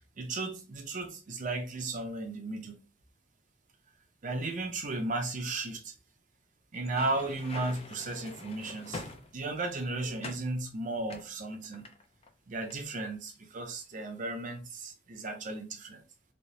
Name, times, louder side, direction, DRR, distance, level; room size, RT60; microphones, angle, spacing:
voice 1, 0.2-2.7 4.2-5.9 6.7-11.8 12.5-16.0, right 2 dB, 45° right, 0.5 m, -35 dB
sound 1, 6.7-9.7 10.2-10.5 11.1-12.3 12.5-12.8, left 3 dB, 30° left, 0.5 m, -45 dB
3.1 x 3.0 x 2.7 m
head